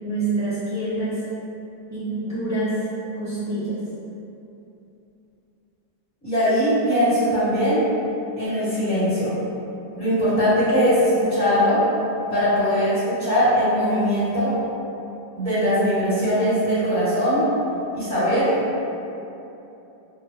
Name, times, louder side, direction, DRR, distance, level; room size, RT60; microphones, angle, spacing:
voice 1, 0.0-1.2 1.9-2.8 3.2-3.8, right 2 dB, 20° right, -13 dB, 0.4 m, -26 dB
voice 2, 6.2-7.8 8.4-9.3 10.0-11.8 12.3-14.6 15.4-17.4 17.9-18.6, equal, 5° left, -16 dB, 1.2 m, -20 dB
3.7 x 2.2 x 3.1 m, 2.9 s
omnidirectional pair, 1.7 m